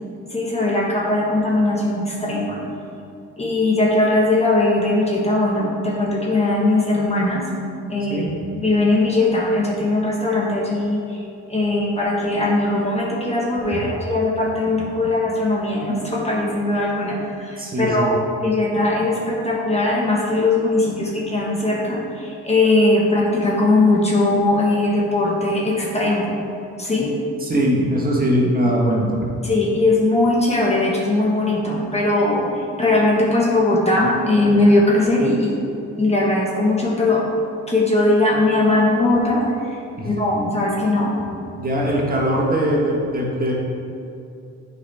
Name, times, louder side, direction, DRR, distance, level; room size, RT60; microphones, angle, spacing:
voice 1, 0.3-2.6 3.4-7.4 7.9-8.2 8.6-11.2 11.5-26.3 26.8-27.1 29.4-35.6 36.0-37.2 37.7-39.4 40.0-41.2, left 2 dB, 20° left, -4 dB, 1.4 m, -19 dB
voice 2, 17.6-18.2 27.4-29.2 40.0-40.1 41.5-43.5, equal, 30° right, -3 dB, 1.4 m, -21 dB
8.4 x 4.9 x 3.5 m, 2.6 s
cardioid pair, 90°, 30 cm